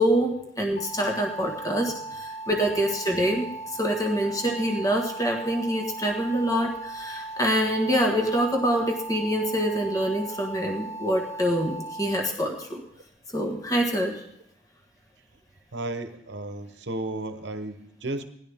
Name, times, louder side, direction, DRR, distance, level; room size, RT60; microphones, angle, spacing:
voice 1, 0.0-12.8 13.3-14.1, equal, 20° left, 2 dB, 1.5 m, -25 dB
sound 1, 0.8-12.2, right 2 dB, 85° left, 1.9 m, -38 dB
voice 2, 15.7-18.2, right 2 dB, 70° right, 9 dB, 1.0 m, -33 dB
18.0 x 11.5 x 3.5 m, 0.76 s
head